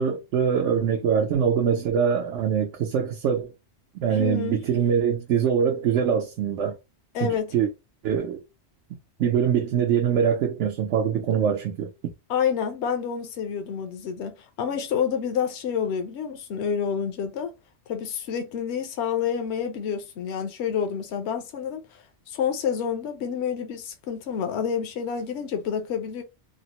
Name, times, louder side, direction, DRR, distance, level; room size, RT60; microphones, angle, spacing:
voice 1, 0.0-3.5 4.0-6.8 7.2-7.7 8.0-8.4 9.2-11.9, right 7 dB, 85° right, 0.9 m, -23 dB
voice 2, 4.1-4.6 7.1-7.5 12.3-17.5 17.9-26.2, left 7 dB, 70° left, 0.9 m, -28 dB
3.2 x 2.0 x 2.9 m
omnidirectional pair, 1.2 m